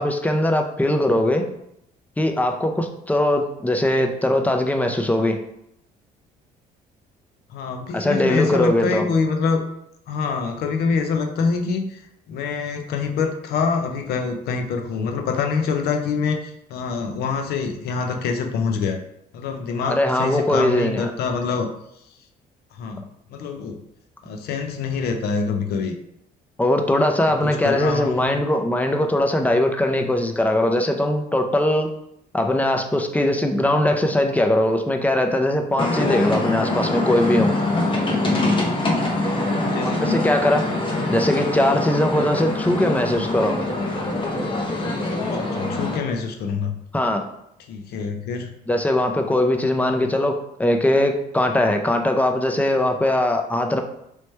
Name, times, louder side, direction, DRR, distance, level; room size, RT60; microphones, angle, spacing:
voice 1, 0.0-1.4 2.2-5.4 7.9-9.0 19.8-21.1 26.6-31.9 32.3-37.5 39.8-40.7 41.1-43.6 46.9-47.2 48.7-53.8, left 1 dB, 10° left, 4 dB, 0.4 m, -20 dB
voice 2, 7.5-9.6 10.1-19.0 19.3-21.7 22.7-23.0 23.3-23.8 24.2-25.9 27.4-28.4 39.6-40.3 45.2-46.7 47.7-48.5, left 5 dB, 70° left, 5 dB, 0.6 m, -25 dB
sound 1, 35.8-46.0, left 2 dB, 30° left, 0.8 m, -24 dB
3.1 x 3.0 x 3.2 m, 0.78 s
cardioid pair, 110°, 17 cm